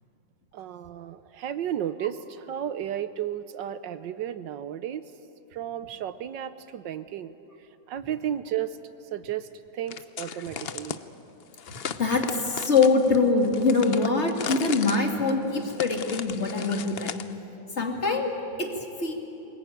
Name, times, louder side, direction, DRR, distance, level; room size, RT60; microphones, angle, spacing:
voice 1, 0.5-5.0 5.5-7.4 7.9-8.8 9.1-9.5 9.7-11.0, right 10 dB, 75° right, 13 dB, 1.4 m, -33 dB
sound 1, 9.9-11.0 11.6-17.3, left 7 dB, 65° left, 0.5 m, -36 dB
voice 2, 11.9-17.1 17.8-18.3 18.6-18.7 19.0-19.1, left 4 dB, 35° left, 2 dB, 2.4 m, -23 dB
24.0 x 21.0 x 9.2 m, 3.0 s
omnidirectional pair, 2.1 m